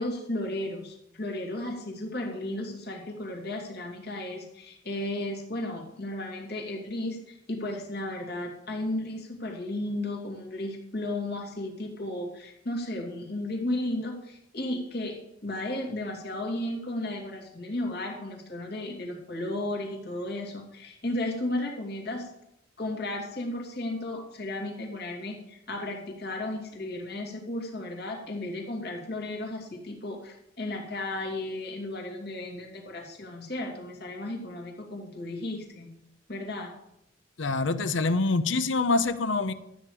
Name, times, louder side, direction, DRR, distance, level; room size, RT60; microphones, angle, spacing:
voice 1, 0.0-22.3 22.8-35.9 36.3-36.7, left 1 dB, 55° left, 0 dB, 2.5 m, -34 dB
voice 2, 37.4-39.5, left 3 dB, 85° left, 13 dB, 0.8 m, -25 dB
13.0 x 8.7 x 4.9 m, 0.80 s
head